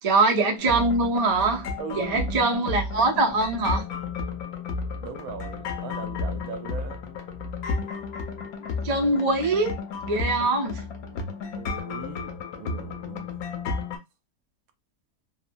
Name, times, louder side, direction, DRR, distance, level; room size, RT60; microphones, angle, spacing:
voice 1, 0.0-1.7 1.9-3.8 8.8-9.7 10.0-10.8, right 3 dB, 40° right, 0.5 m, -23 dB
sound 1, 0.6-14.0, left 4 dB, 90° left, 1.2 m, -33 dB
voice 2, 1.8-2.3 5.0-7.0 11.5-13.3, right 5 dB, 80° right, 1.0 m, -39 dB
3.0 x 2.1 x 2.4 m
omnidirectional pair, 1.5 m